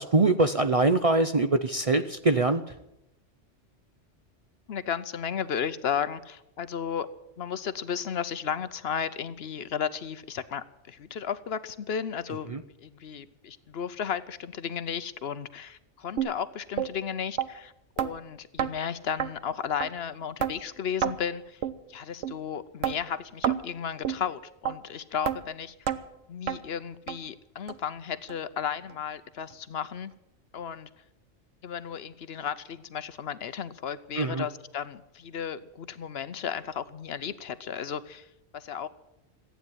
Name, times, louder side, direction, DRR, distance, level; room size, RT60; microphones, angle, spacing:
voice 1, 0.0-2.8 12.5-12.6 34.2-34.5, right 2 dB, 40° right, 8 dB, 0.6 m, -23 dB
voice 2, 4.7-7.1 7.4-12.5 12.8-21.6 21.9-25.9 26.3-30.1 30.5-31.0 31.6-38.9, left 7 dB, 60° left, 14 dB, 0.9 m, -34 dB
sound 1, 16.2-16.3 16.8-16.9 17.4-17.5 18.0-18.1 18.6-18.7 19.2-19.3 19.8-19.9 20.4-20.5 21.0-21.2 21.6-21.8 22.2-22.3 22.8-23.0 23.4-23.6 24.0-24.2 24.7-24.8 25.3-25.4 25.9-26.0 26.5-26.6 27.1-27.2 27.7-27.8 28.3-28.4 28.9-29.0, right 10 dB, 85° right, 1.2 m, -28 dB
14.5 x 9.2 x 9.7 m, 0.85 s
omnidirectional pair, 1.2 m